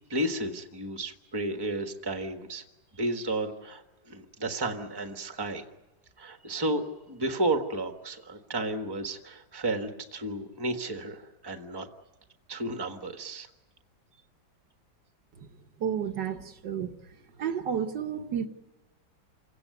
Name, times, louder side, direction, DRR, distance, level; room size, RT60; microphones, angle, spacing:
voice 1, 0.1-2.6 2.9-5.6 6.2-11.9 12.5-13.5, right 1 dB, 15° right, 5 dB, 1.4 m, -32 dB
voice 2, 15.8-16.9 17.4-18.5, right 8 dB, 65° right, 8 dB, 1.7 m, -31 dB
28.0 x 17.0 x 9.5 m, 1.1 s
omnidirectional pair, 2.1 m